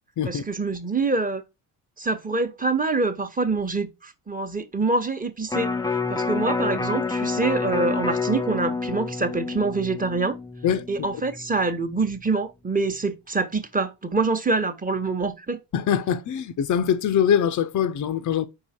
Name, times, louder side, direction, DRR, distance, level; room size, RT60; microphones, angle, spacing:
voice 1, 0.2-1.4 2.0-10.3 10.9-15.6, right 3 dB, 20° right, 1.1 m, -25 dB
Electric guitar, 5.5-11.7 12.1-12.2, left 4 dB, 10° left, 0.5 m, -28 dB
voice 2, 15.7-18.5, left 8 dB, 45° left, 0.7 m, -23 dB
4.8 x 4.7 x 4.3 m
hypercardioid pair, 60°, 41 cm